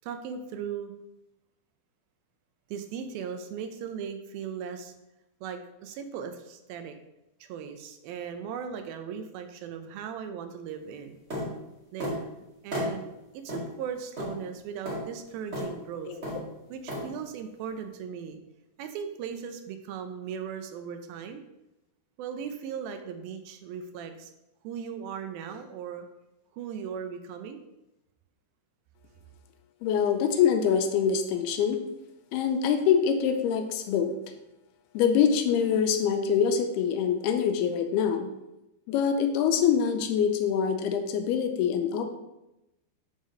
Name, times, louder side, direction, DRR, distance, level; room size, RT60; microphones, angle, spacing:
voice 1, 0.0-0.9 2.7-4.9 5.4-7.0 7.4-11.2 11.9-12.2 12.6-13.1 13.3-16.2 16.7-18.4 18.8-21.4 22.2-24.3 24.6-26.1 26.5-27.6, right 7 dB, 80° right, 7 dB, 2.3 m, -38 dB
sound 1, 11.3-11.5 12.0-12.2 12.7-12.9 13.5-13.6 14.2-14.3 14.9-15.0 15.5-15.7 16.2-16.4 16.9-17.0, equal, 35° right, 1.0 m, -32 dB
voice 2, 29.8-31.8 32.3-34.2 34.9-38.3 38.9-42.1, left 7 dB, 85° left, 6 dB, 2.7 m, -25 dB
7.1 x 3.8 x 6.2 m, 0.92 s
omnidirectional pair, 4.5 m